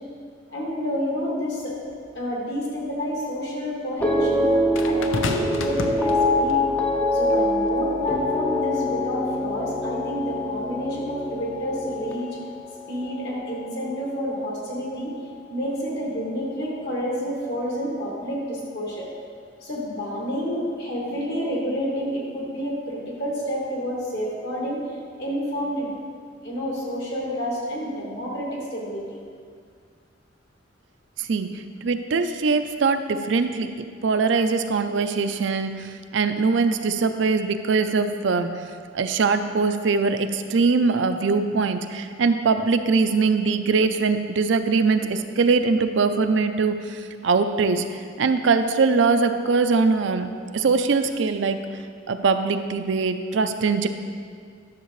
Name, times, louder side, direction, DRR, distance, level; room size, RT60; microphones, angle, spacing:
voice 1, 0.5-1.8 2.1-4.5 4.8-6.6 7.1-12.3 12.9-15.1 15.5-19.1 19.6-24.8 25.2-25.9 26.4-29.2, equal, 60° left, -4 dB, 1.9 m, -29 dB
sound 1, 1.9-2.0 4.8-6.7 7.6-7.8, left 3 dB, 85° left, 0.6 m, -30 dB
sound 2, 4.0-14.4 14.7-15.2, left 1 dB, 10° left, 0.5 m, -25 dB
voice 2, 31.2-33.7 34.0-38.5 38.9-47.9 48.2-50.3 50.5-51.6 52.1-53.9, right 4 dB, 70° right, 8 dB, 0.4 m, -22 dB
10.5 x 6.6 x 3.1 m, 2.1 s
head